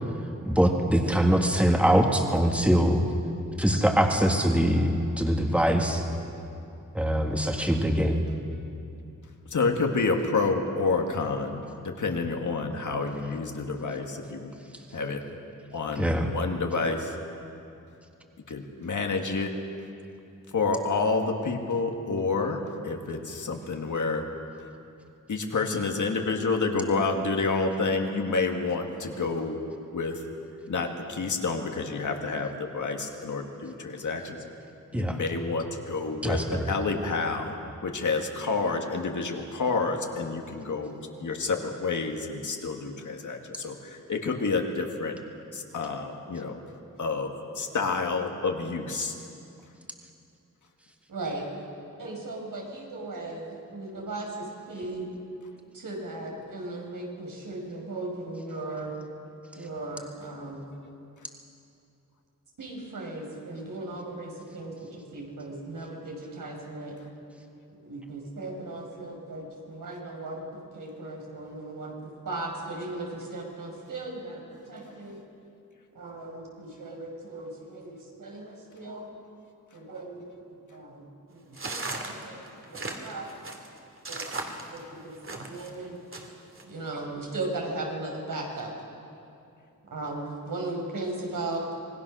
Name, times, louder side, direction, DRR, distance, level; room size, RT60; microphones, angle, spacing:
voice 1, 0.4-3.1 3.6-6.0 6.9-8.2 16.0-16.3 34.9-35.2 36.2-36.7, equal, 5° right, 2 dB, 1.8 m, -23 dB
voice 2, 9.5-14.5 14.9-15.2 15.7-17.2 18.5-19.5 20.5-24.3 25.3-29.6 29.9-30.2 30.7-34.4 34.9-37.5 37.8-40.9 41.2-45.2 45.5-46.6 47.0-49.1, left 4 dB, 70° left, 3 dB, 2.1 m, -29 dB
voice 3, 51.1-51.7 52.0-55.1 55.7-58.9 59.5-60.7 62.6-67.0 67.8-75.2 75.9-79.1 79.7-83.3 84.1-84.2 84.7-86.3 86.6-88.7 89.9-91.6, right 2 dB, 85° right, 0 dB, 5.1 m, -37 dB
sound 1, 81.5-85.7 86.1-86.6, right 2 dB, 40° right, 2.3 m, -36 dB
26.0 x 21.0 x 6.4 m, 2.7 s
wide cardioid pair, 150°, 32 cm